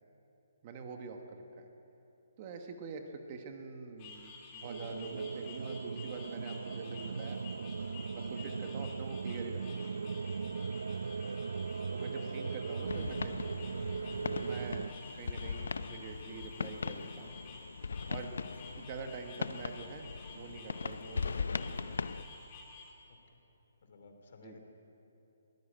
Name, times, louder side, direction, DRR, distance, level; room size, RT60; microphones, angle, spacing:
voice 1, 0.6-1.7 2.4-7.4 8.1-9.6 11.9-13.4 14.4-17.3 18.1-18.3 18.8-22.1 24.4-24.6, right 4 dB, 20° right, 4 dB, 1.2 m, -46 dB
sound 1, 4.0-22.9, left 4 dB, 20° left, 2.6 m, -52 dB
sound 2, 4.6-14.9, right 5 dB, 85° right, 0.6 m, -38 dB
voice 2, 11.2-11.6 23.1-23.4 23.8-24.6, left 4 dB, 45° left, 5 dB, 2.8 m, -58 dB
sound 3, 12.9-22.2, left 4 dB, 75° left, 0.7 m, -39 dB
22.0 x 18.0 x 8.9 m, 3.0 s
hypercardioid pair, 180°, 0 cm